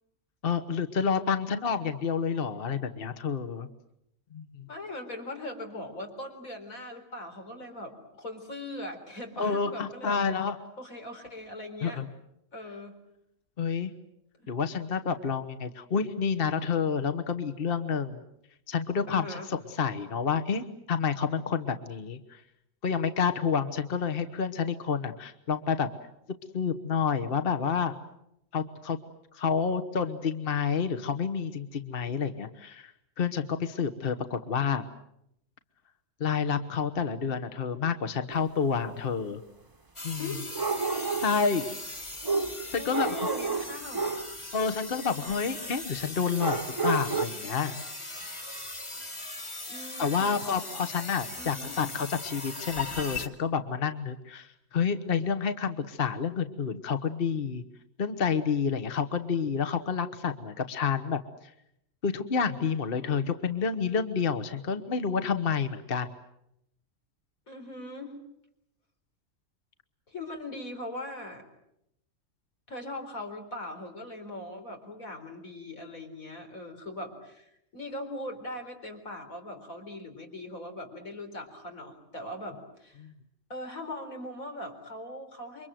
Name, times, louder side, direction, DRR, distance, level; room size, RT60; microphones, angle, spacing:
voice 1, 0.4-3.7 4.3-4.7 9.4-10.6 11.8-12.1 13.6-13.9 14.5-18.2 18.7-22.4 22.8-25.9 26.5-28.0 28.5-29.0 29.3-34.9 36.2-39.4 40.0-40.3 41.2-41.7 42.7-43.3 44.5-47.8 50.0-57.6 58.0-61.5 62.0-66.1 83.0-83.1, left 6 dB, 45° left, 9 dB, 1.4 m, -29 dB
voice 2, 4.7-10.2 10.8-12.0 12.5-13.0 14.4-14.5 19.1-19.5 40.2-40.5 42.8-44.4 49.7-50.8 51.4-51.8 67.5-68.1 70.1-71.4 72.7-83.1 83.5-85.7, left 1 dB, 90° left, 4 dB, 4.7 m, -40 dB
sound 1, 38.3-38.4 40.5-41.4 42.2-44.3 46.4-47.2, right 4 dB, 20° right, 0.9 m, -30 dB
sound 2, 40.0-53.3, left 2 dB, 20° left, 1.7 m, -39 dB
28.5 x 24.0 x 7.7 m, 0.79 s
omnidirectional pair, 1.4 m